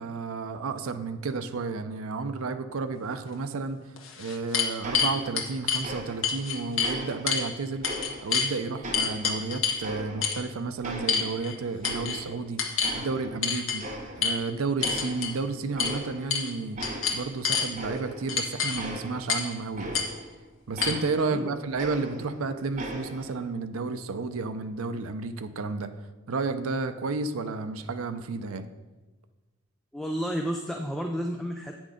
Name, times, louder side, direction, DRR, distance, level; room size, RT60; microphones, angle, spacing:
voice 1, 0.0-3.8 4.2-7.9 8.2-12.6 12.9-13.9 14.2-16.8 17.1-20.0 20.7-25.9 26.3-28.6, right 4 dB, 85° right, 9 dB, 0.5 m, -32 dB
sound 1, 3.3-3.4 4.0-5.8 6.2-7.0 7.3-7.5 7.8-8.5 8.9-9.8 10.2-10.4 11.1-11.6 11.8-12.2 12.6-13.0 13.4-13.8 14.2-14.4 14.8-15.3 15.8-16.0 16.3-16.5 16.8-17.7 18.3-18.8 19.3-19.5 19.9-20.1 20.8-20.9, left 6 dB, 70° left, 1.2 m, -27 dB
sound 2, 4.8-5.5 5.8-6.5 6.8-8.5 8.8-10.5 10.8-12.4 12.8-13.5 13.8-14.4 14.8-15.4 15.7-16.4 16.8-20.4 20.8-22.4 22.8-23.4, right 1 dB, 35° right, 0.9 m, -39 dB
voice 2, 21.3-21.7 29.9-31.8, equal, ahead, 2 dB, 0.4 m, -31 dB
8.4 x 6.1 x 5.0 m, 1.2 s
head